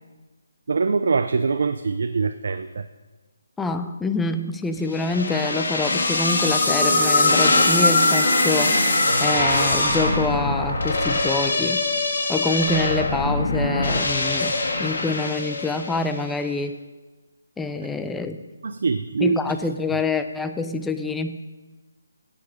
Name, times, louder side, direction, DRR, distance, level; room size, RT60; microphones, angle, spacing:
voice 1, 0.7-2.9 18.6-19.4, right 4 dB, 60° right, 9 dB, 0.5 m, -23 dB
voice 2, 3.6-11.9 12.3-16.8 17.6-18.4 19.2-21.4, left 3 dB, 5° left, 8 dB, 0.4 m, -26 dB
sound 1, 4.9-16.2, left 2 dB, 60° left, 1.7 m, -22 dB
Harp, 6.3-12.1, right 4 dB, 40° right, 3.2 m, -31 dB
11.5 x 8.4 x 4.9 m, 1.3 s
hypercardioid pair, 170°, 0 cm